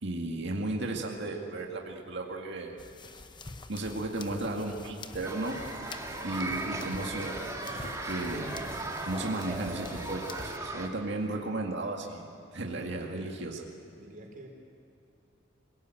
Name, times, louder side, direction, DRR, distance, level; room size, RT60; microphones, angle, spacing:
voice 1, 0.0-2.8 3.7-5.6 6.2-7.4 7.8-8.5 9.0-13.6, right 2 dB, 60° right, 0 dB, 2.0 m, -34 dB
sound 1, 2.8-10.6, left 3 dB, 25° left, 0.8 m, -47 dB
sound 2, 5.2-10.9, right 2 dB, 15° right, 2.0 m, -37 dB
voice 2, 12.5-13.4 13.9-14.5, right 1 dB, 45° right, 1 dB, 4.6 m, -49 dB
26.0 x 17.5 x 9.1 m, 2.6 s
head